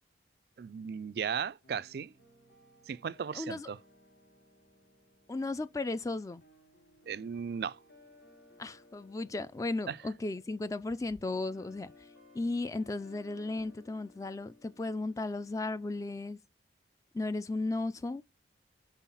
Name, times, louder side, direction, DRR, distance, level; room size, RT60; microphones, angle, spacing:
voice 1, 0.6-2.1 2.9-3.8 7.1-7.8 9.9-10.0, right 7 dB, 60° right, 0.3 m, -36 dB
sound 1, 1.6-16.1, left 2 dB, 70° left, 3.0 m, -61 dB
voice 2, 3.3-3.7 5.3-6.4 8.6-11.9 12.3-16.4 17.1-18.2, left 2 dB, 20° left, 0.3 m, -35 dB
5.6 x 4.5 x 5.6 m
head